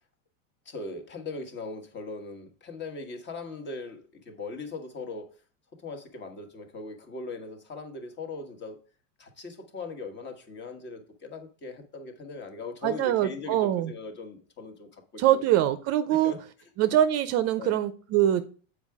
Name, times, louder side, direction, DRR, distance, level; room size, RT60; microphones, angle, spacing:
voice 1, 0.6-5.3 5.7-8.8 9.2-15.4 16.1-16.4 16.9-17.0 17.6-17.8, left 3 dB, 30° left, 1.4 m, -39 dB
voice 2, 12.8-13.9 15.2-16.3 16.8-18.5, right 12 dB, 40° right, 0.6 m, -24 dB
7.3 x 4.9 x 4.7 m
supercardioid pair, 130°, 38 cm